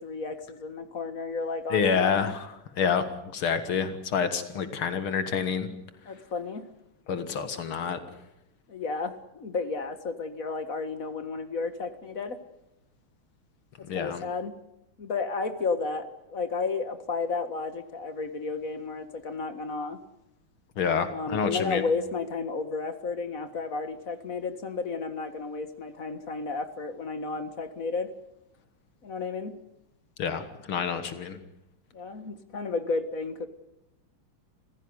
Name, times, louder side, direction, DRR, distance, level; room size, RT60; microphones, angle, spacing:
voice 1, 0.0-2.2 6.0-6.7 8.7-12.4 13.8-14.6 15.0-20.0 21.1-28.1 29.0-29.5 31.9-33.5, left 4 dB, 40° left, 10 dB, 1.9 m, -32 dB
voice 2, 1.7-2.5 2.8-3.1 3.3-5.7 7.1-8.0 13.9-14.2 20.8-21.8 30.2-31.4, left 6 dB, 80° left, 10 dB, 2.5 m, -28 dB
27.0 x 16.0 x 9.7 m, 0.85 s
omnidirectional pair, 2.3 m